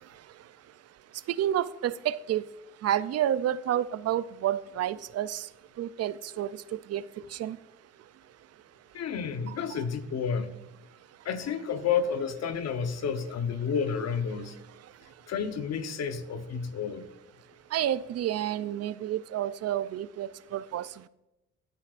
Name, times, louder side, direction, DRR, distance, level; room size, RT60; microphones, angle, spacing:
voice 1, 1.3-2.5 2.8-5.5 5.8-6.5 6.9-7.0 7.3-7.6 17.7-20.9, right 11 dB, 55° right, 0.4 m, -29 dB
voice 2, 8.9-10.6 11.2-14.5 15.3-17.1, left 6 dB, 60° left, 1.0 m, -30 dB
15.5 x 7.8 x 2.5 m
cardioid pair, 90°, 30 cm